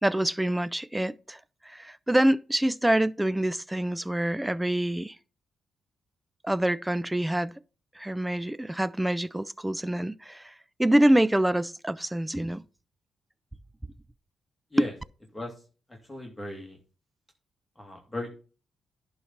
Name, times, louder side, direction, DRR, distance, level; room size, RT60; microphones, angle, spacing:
voice 1, 0.0-5.1 6.4-7.5 8.0-10.5 10.8-12.6 14.8-14.9, right 1 dB, 10° right, 0.4 m, -26 dB
voice 2, 16.1-16.8 17.8-18.3, left 1 dB, 10° left, 2.4 m, -36 dB
11.0 x 4.0 x 5.9 m
cardioid pair, 85°, 0 cm